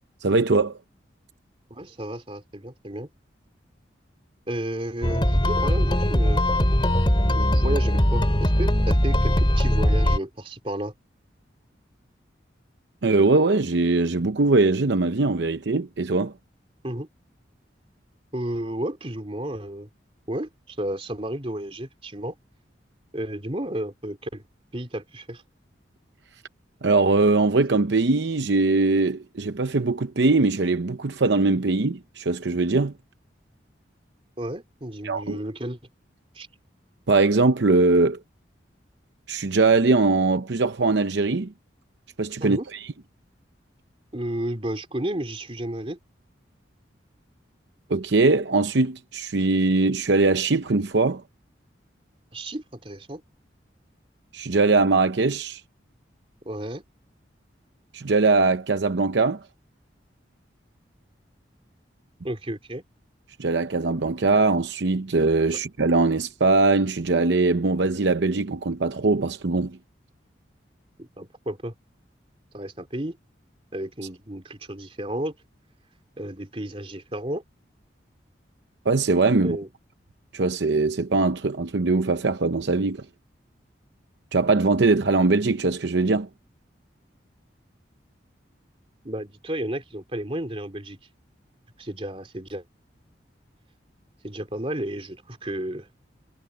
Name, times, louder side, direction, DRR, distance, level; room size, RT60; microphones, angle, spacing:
voice 1, 0.2-0.8 13.0-16.3 26.8-32.9 35.0-35.4 37.1-38.2 39.3-41.5 42.2-42.8 47.9-51.2 54.3-55.6 57.9-59.4 63.4-69.8 78.9-79.6 80.3-83.0 84.3-86.3, right 3 dB, 70° right, 0.7 m, -21 dB
voice 2, 1.7-3.1 4.5-6.4 7.3-10.9 16.8-17.1 18.3-19.9 20.3-22.3 23.1-24.4 24.7-25.4 34.4-35.8 36.3-36.5 42.4-42.7 44.1-46.0 52.3-53.2 56.4-56.8 62.2-62.8 65.5-65.6 71.0-71.7 72.5-73.2 73.7-75.3 76.2-77.4 79.4-79.7 89.0-91.0 91.8-92.6 94.2-95.9, right 1 dB, 30° right, 3.0 m, -32 dB
sound 1, 5.0-10.2, equal, 25° left, 3.2 m, -20 dB
head